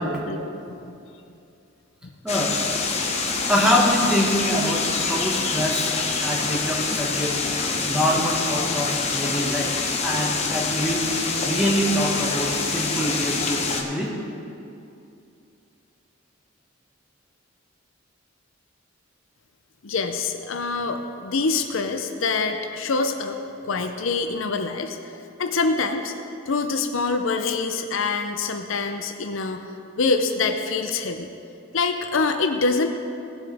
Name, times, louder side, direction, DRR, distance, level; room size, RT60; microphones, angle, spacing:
voice 1, 0.3-1.0 19.8-23.4 23.6-25.0 25.4-26.1 26.5-29.6 30.0-31.3 31.7-32.9, left 4 dB, 70° left, 6 dB, 0.7 m, -25 dB
voice 2, 2.2-2.6 3.5-7.4 7.8-9.7 10.0-11.0 11.4-14.1, equal, 5° right, -3 dB, 1.6 m, -24 dB
sound 1, 2.3-13.8, left 4 dB, 30° left, 1.1 m, -26 dB
18.0 x 8.0 x 3.5 m, 2.7 s
head